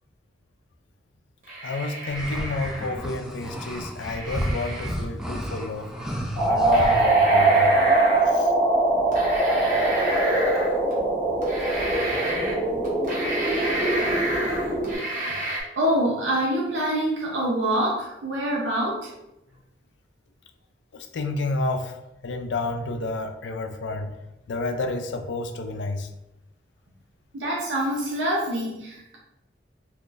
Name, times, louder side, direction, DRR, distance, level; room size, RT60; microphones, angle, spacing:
sound 1, 1.4-3.1 4.0-4.9 6.1-6.2 6.7-8.4 9.1-10.9 11.4-12.6 12.8-15.6, right 1 dB, 45° right, 0.9 m, -31 dB
voice 1, 1.6-7.8 8.3-8.5 20.9-22.0 22.2-24.1 24.5-26.1, left 3 dB, 85° left, 7 dB, 0.4 m, -30 dB
sound 2, 2.1-7.0, equal, 5° right, 0.4 m, -32 dB
sound 3, 6.4-14.9, right 2 dB, 25° left, 1.1 m, -22 dB
voice 2, 15.7-19.1 27.3-29.2, right 1 dB, 90° right, -3 dB, 0.6 m, -26 dB
3.7 x 2.9 x 2.5 m, 0.89 s
head